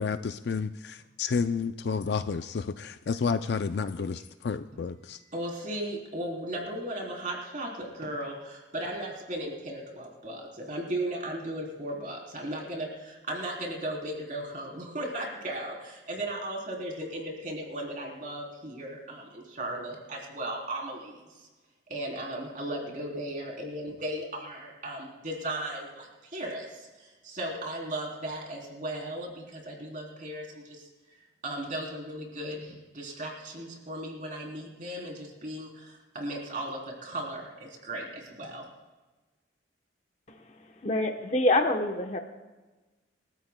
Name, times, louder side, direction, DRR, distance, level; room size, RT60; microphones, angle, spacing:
voice 1, 0.0-5.2, left 5 dB, 60° left, 10 dB, 0.4 m, -30 dB
voice 2, 5.2-21.5 21.9-30.9 31.4-38.7, right 1 dB, 45° right, 0 dB, 3.5 m, -36 dB
voice 3, 40.8-42.2, left 1 dB, 35° left, 4 dB, 0.9 m, -25 dB
29.0 x 13.0 x 2.2 m, 1.2 s
head